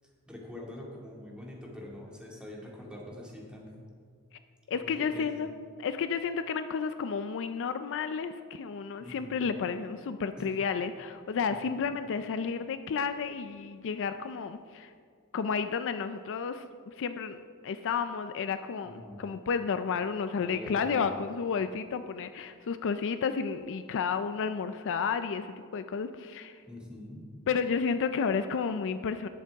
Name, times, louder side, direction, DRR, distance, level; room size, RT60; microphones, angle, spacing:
voice 1, 0.3-3.9 4.7-5.3 9.0-9.5 10.4-10.5 11.5-11.6 18.9-19.2 20.4-21.1 26.7-27.2, left 1 dB, 5° right, -3 dB, 2.2 m, -44 dB
voice 2, 4.7-5.5 5.8-14.9 15.3-26.6 27.5-29.3, left 6 dB, 60° left, 10 dB, 0.4 m, -32 dB
19.0 x 7.4 x 3.5 m, 2.1 s
head